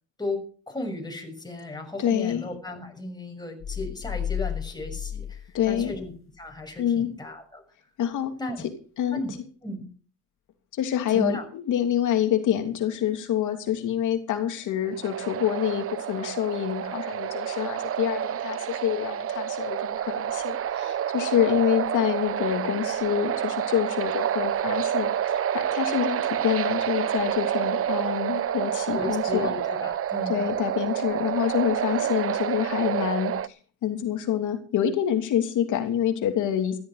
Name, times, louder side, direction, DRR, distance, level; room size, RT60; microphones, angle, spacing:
voice 1, 0.2-5.4 5.7-7.6 8.4-8.7 9.1-9.9 11.1-11.4 28.9-30.4, left 1 dB, 15° left, 2 dB, 6.5 m, -35 dB
voice 2, 2.0-2.4 5.5-5.9 6.8-7.1 8.0-8.3 9.0-9.2 10.8-29.5 30.3-33.3 33.8-36.8, left 10 dB, 80° left, 5 dB, 3.0 m, -27 dB
sound 1, 3.6-6.2 6.5-6.6, left 9 dB, 45° left, 1.1 m, -33 dB
sound 2, 14.9-33.5, right 10 dB, 50° right, 0.7 m, -28 dB
15.5 x 12.5 x 5.0 m, 0.41 s
cardioid pair, 90°, 30 cm